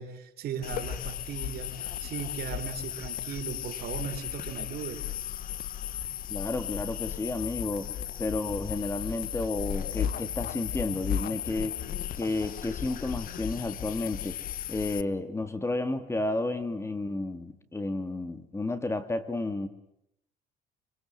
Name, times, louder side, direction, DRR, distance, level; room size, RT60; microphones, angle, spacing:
voice 1, 0.0-5.0, right 7 dB, 65° right, 5 dB, 4.2 m, -37 dB
sound 1, 0.6-15.0, left 10 dB, 55° left, 1.2 m, -35 dB
voice 2, 6.3-11.7 12.2-14.4 14.7-19.7, left 2 dB, 15° left, 10 dB, 1.9 m, -32 dB
26.0 x 24.5 x 7.8 m, 0.77 s
cardioid pair, 110°, 17 cm